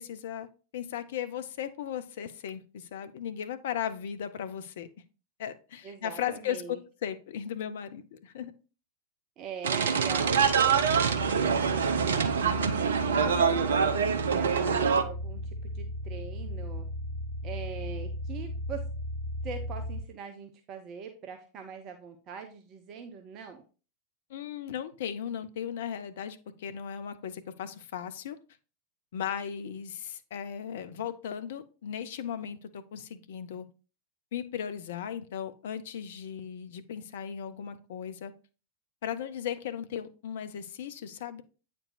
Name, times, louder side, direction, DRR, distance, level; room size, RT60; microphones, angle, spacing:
voice 1, 0.0-4.9 5.4-8.5 12.6-12.8 24.3-28.4 29.1-33.7 34.3-38.3 39.0-41.4, left 9 dB, 55° left, 11 dB, 0.6 m, -37 dB
voice 2, 5.8-6.8 9.4-11.8 12.3-16.9 17.4-18.9 19.4-23.6, right 6 dB, 35° right, 5 dB, 0.7 m, -42 dB
sound 1, 9.6-15.0, right 6 dB, 65° right, 0.5 m, -25 dB
sound 2, 10.1-20.0, left 1 dB, 5° left, 2.8 m, -37 dB
8.7 x 4.5 x 2.6 m, 0.35 s
figure-of-eight pair, 90°, 0 cm